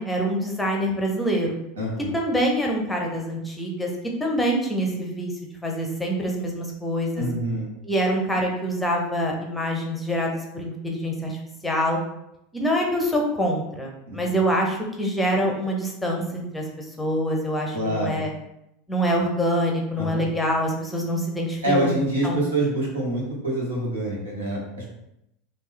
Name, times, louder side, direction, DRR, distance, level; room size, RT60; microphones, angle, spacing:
voice 1, 0.0-1.5 2.1-3.9 4.2-5.3 5.6-7.2 7.8-11.4 11.6-12.0 12.5-18.3 18.9-21.9 22.2-22.4, equal, 5° left, 0 dB, 0.8 m, -25 dB
voice 2, 1.8-2.1 7.1-7.7 14.1-14.3 17.7-18.2 20.0-20.3 21.6-24.9, right 1 dB, 70° right, -3 dB, 1.3 m, -26 dB
3.6 x 2.7 x 3.3 m, 0.82 s
figure-of-eight pair, 80°, 0 cm